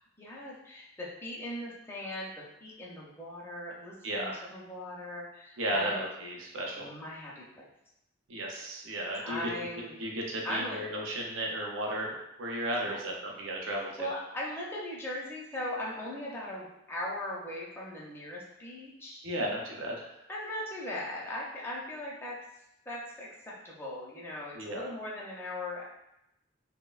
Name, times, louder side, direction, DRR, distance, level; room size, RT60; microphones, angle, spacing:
voice 1, 0.0-2.3 2.6-6.0 6.7-7.7 9.2-10.0 10.4-10.8 12.8-13.0 14.0-19.3 20.3-22.4 22.9-25.8, left 1 dB, 10° left, -5 dB, 0.4 m, -39 dB
voice 2, 4.0-4.4 5.6-6.9 8.3-9.5 10.0-14.1 19.2-20.2 24.5-24.8, right 1 dB, 75° right, -1 dB, 0.5 m, -34 dB
2.9 x 2.1 x 2.3 m, 0.86 s
head